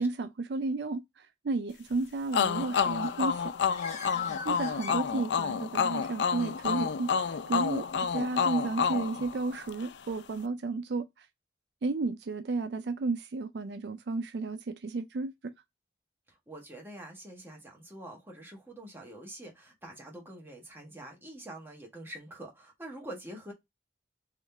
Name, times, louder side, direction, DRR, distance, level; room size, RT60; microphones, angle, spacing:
voice 1, 0.0-3.5 4.4-7.9 8.1-11.1 11.8-15.5, right 3 dB, 75° right, 0.4 m, -33 dB
sound 1, 2.3-9.9, left 6 dB, 80° left, 0.4 m, -29 dB
Bird, 2.5-5.6, left 6 dB, 45° left, 1.0 m, -42 dB
voice 2, 4.0-4.5 16.3-23.5, right 1 dB, 15° right, 1.5 m, -46 dB
3.7 x 3.1 x 3.4 m
head